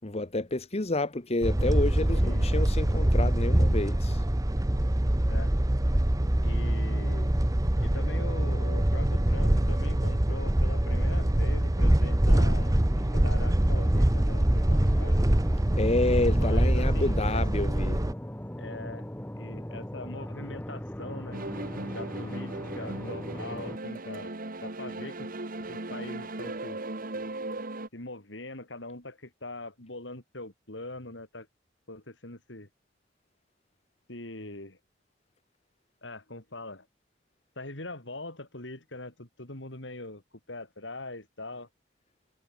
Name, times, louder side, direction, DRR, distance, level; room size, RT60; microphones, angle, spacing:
voice 1, 0.0-4.2 15.8-18.0, left 2 dB, 35° left, 1.3 m, -29 dB
sound 1, 1.4-18.1, right 1 dB, 20° right, 1.0 m, -24 dB
voice 2, 2.1-2.6 5.3-5.5 6.4-7.4 7.8-15.2 16.3-17.4 18.6-19.1 19.4-21.4 21.9-24.3 24.6-25.3 25.7-26.8 27.9-31.5 31.9-32.7 34.1-34.8 36.0-36.9 37.6-40.2 40.5-41.7, left 2 dB, 70° left, 4.6 m, -42 dB
sound 2, 12.1-23.8, equal, 10° left, 1.2 m, -39 dB
sound 3, 21.3-27.9, right 2 dB, 50° right, 2.1 m, -37 dB
head